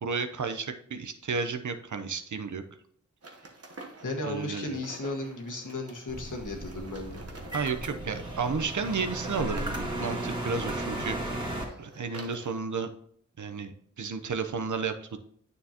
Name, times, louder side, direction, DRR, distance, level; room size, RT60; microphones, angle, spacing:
voice 1, 0.0-2.6 4.2-4.8 7.5-11.2 11.8-12.9 13.4-15.2, right 5 dB, 70° right, 8 dB, 0.8 m, -32 dB
sound 1, 3.2-12.6, right 2 dB, 50° right, 1.1 m, -49 dB
voice 2, 4.0-7.2, left 2 dB, 75° left, 2 dB, 1.6 m, -35 dB
sound 2, 6.1-11.6, right 1 dB, 15° right, 1.8 m, -35 dB
9.1 x 6.8 x 2.9 m, 0.65 s
wide cardioid pair, 70°, 31 cm